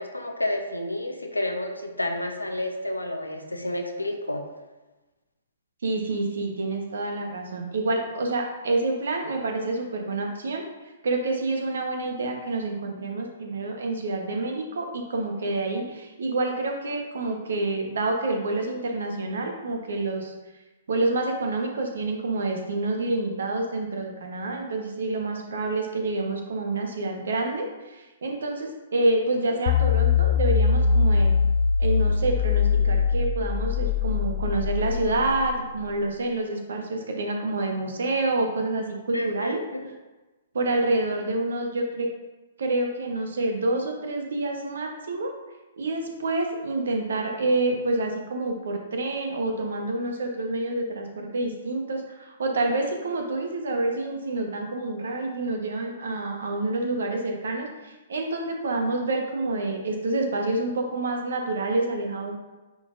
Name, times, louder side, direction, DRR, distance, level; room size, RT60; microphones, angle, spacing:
voice 1, 0.0-4.4 39.1-39.9, left 1 dB, 85° left, 4 dB, 0.9 m, -30 dB
voice 2, 5.8-10.6 11.0-20.3 20.9-31.3 31.8-39.6 40.5-42.1 42.6-45.3 45.8-62.4, right 2 dB, 65° right, 2 dB, 1.2 m, -28 dB
sound 1, 29.7-35.9, left 5 dB, 50° left, 0.4 m, -22 dB
9.5 x 4.1 x 2.6 m, 1.1 s
figure-of-eight pair, 120°, 0 cm